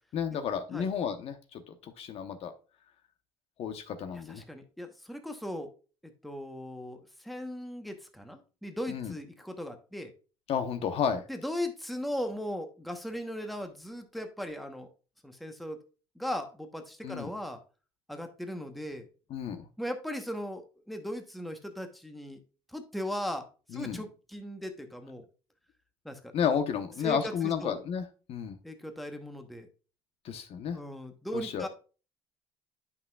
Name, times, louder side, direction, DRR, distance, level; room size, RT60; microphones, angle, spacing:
voice 1, 0.1-2.5 3.6-4.4 8.9-9.1 10.5-11.2 17.0-17.3 19.3-19.7 23.7-24.0 26.3-28.6 30.2-30.8 31.3-31.7, left 7 dB, 55° left, 8 dB, 0.9 m, -32 dB
voice 2, 4.3-5.7 6.0-10.1 11.3-14.9 15.2-15.8 16.2-17.6 18.1-19.1 19.8-22.4 22.7-23.5 23.7-25.2 26.0-26.3 27.0-27.3 27.6-27.8 28.6-29.7 30.7-31.7, equal, ahead, 6 dB, 0.9 m, -38 dB
9.3 x 5.6 x 2.3 m, 0.35 s
cardioid pair, 110°, 12 cm